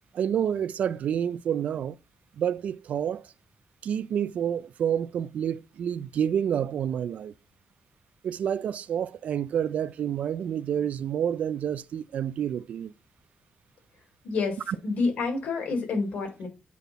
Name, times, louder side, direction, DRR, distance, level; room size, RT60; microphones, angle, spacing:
voice 1, 0.1-2.0 2.4-3.3 3.8-7.3 8.2-12.9 14.7-14.8, right 9 dB, 65° right, 0.4 m, -28 dB
voice 2, 14.2-16.5, left 4 dB, 85° left, 3.7 m, -28 dB
8.4 x 4.1 x 4.0 m
wide cardioid pair, 170°, 3 cm